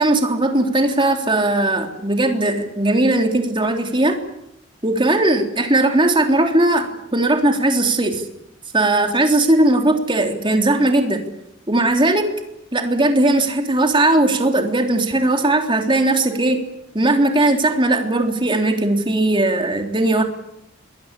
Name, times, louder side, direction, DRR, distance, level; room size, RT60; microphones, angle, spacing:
voice 1, 0.0-4.2 4.8-8.3 8.7-11.2 11.7-12.3 12.7-16.7 16.9-20.2, right 2 dB, 25° right, 4 dB, 3.6 m, -18 dB
26.5 x 22.0 x 8.4 m, 0.84 s
head